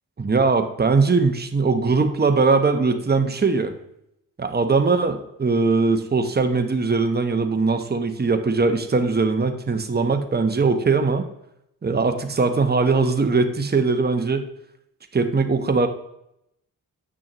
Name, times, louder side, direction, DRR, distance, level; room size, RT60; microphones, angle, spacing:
voice 1, 0.2-3.7 4.4-11.2 11.8-14.5 15.1-15.9, right 4 dB, 25° right, 6 dB, 1.0 m, -20 dB
8.9 x 6.1 x 3.0 m, 0.79 s
supercardioid pair, 50°, 37 cm